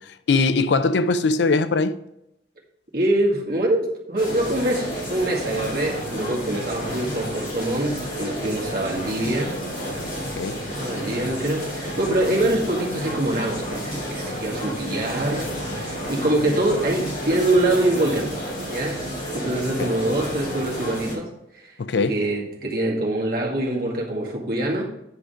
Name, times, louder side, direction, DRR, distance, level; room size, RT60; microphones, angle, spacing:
voice 1, 0.0-2.0 10.3-10.6 19.8-19.9 21.8-22.2, left 3 dB, 70° left, 0.5 m, -21 dB
voice 2, 2.9-9.5 10.8-15.5 15.7-18.4 18.7-19.0 19.3-21.8 22.1-24.9, right 1 dB, 55° right, 2.0 m, -24 dB
sound 1, 4.2-21.1, equal, 40° left, 3.3 m, -31 dB
9.9 x 5.0 x 4.9 m
head